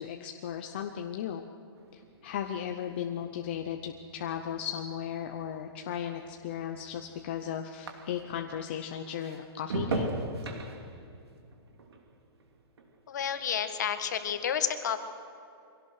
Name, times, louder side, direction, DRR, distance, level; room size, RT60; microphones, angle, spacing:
voice 1, 0.0-1.4 1.9-10.1, left 9 dB, 25° left, 4 dB, 0.7 m, -36 dB
sound 1, 1.8-8.5 8.9-13.4 13.7-14.2, right 3 dB, 80° right, 2.9 m, -40 dB
voice 2, 13.1-15.1, left 8 dB, 45° left, 8 dB, 1.6 m, -30 dB
23.5 x 17.0 x 6.5 m, 2.7 s
hypercardioid pair, 180°, 13 cm